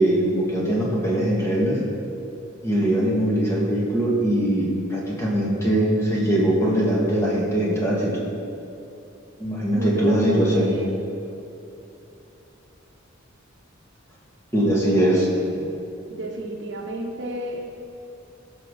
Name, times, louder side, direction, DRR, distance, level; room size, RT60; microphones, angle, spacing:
voice 1, 0.0-1.8 2.6-8.1 9.4-10.7 14.5-15.3, right 1 dB, 15° left, -5 dB, 2.0 m, -21 dB
voice 2, 9.7-10.9 14.6-15.7 16.1-17.6, right 1 dB, 60° right, 1 dB, 1.1 m, -31 dB
16.5 x 6.6 x 4.1 m, 2.8 s
head